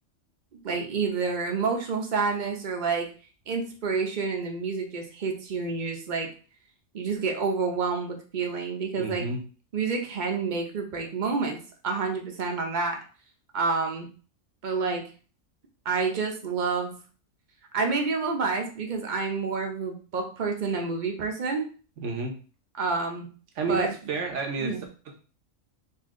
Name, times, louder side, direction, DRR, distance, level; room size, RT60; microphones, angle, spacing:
voice 1, 0.5-3.1 3.5-6.3 6.9-9.3 9.7-11.6 11.8-13.0 13.5-14.1 14.6-15.0 15.8-17.0 17.7-21.7 22.8-23.3 23.7-23.9 24.6-24.8, right 4 dB, 45° right, 2 dB, 0.8 m, -28 dB
voice 2, 9.0-9.4 22.0-22.3 23.6-24.7 25.1-25.2, right 4 dB, 70° right, 3 dB, 1.2 m, -30 dB
4.2 x 2.6 x 3.7 m, 0.38 s
omnidirectional pair, 1.3 m